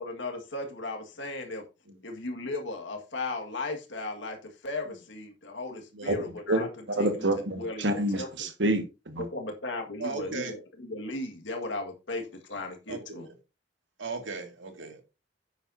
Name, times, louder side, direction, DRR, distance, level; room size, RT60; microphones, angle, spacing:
voice 1, 0.0-1.6 2.0-6.7 7.0-7.2 7.6-8.3 9.3-13.3, left 2 dB, 75° left, 1.8 m, -36 dB
voice 2, 7.0-9.2, right 1 dB, 70° right, 1.6 m, -27 dB
voice 3, 10.0-10.6 12.9-13.3 14.0-15.0, right 4 dB, 85° right, 2.2 m, -37 dB
10.5 x 9.0 x 2.7 m
head